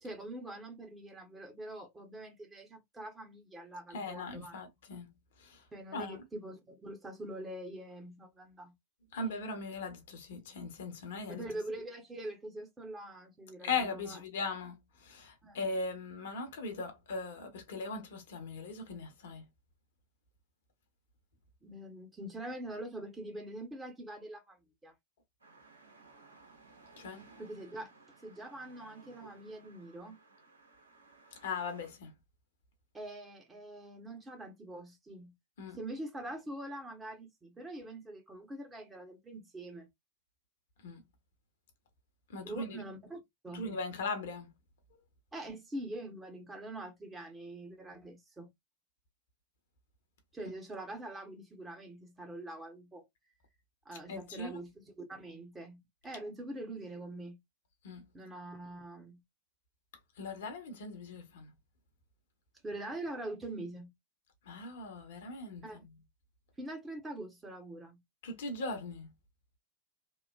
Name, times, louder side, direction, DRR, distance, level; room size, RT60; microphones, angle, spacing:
voice 1, 0.0-4.5 5.7-8.7 11.3-14.2 15.4-15.6 21.6-24.9 27.4-27.9 28.2-30.2 32.9-35.3 35.8-39.9 42.4-43.7 45.3-48.5 50.3-53.0 53.8-57.4 58.1-59.2 62.6-63.9 65.6-65.8 66.6-68.0, right 1 dB, 15° right, 0.9 m, -44 dB
voice 2, 3.9-5.1 5.4-6.2 9.1-11.4 13.6-19.4 27.0-27.2 31.4-32.2 35.6-35.8 40.8-41.0 42.3-42.8 43.5-44.5 54.1-54.6 57.8-58.1 60.2-61.5 64.4-65.9 68.2-69.1, left 3 dB, 60° left, 0.9 m, -39 dB
sound 1, 25.4-31.9, right 4 dB, 75° right, 1.1 m, -59 dB
3.0 x 2.1 x 2.2 m
figure-of-eight pair, 90°, 0 cm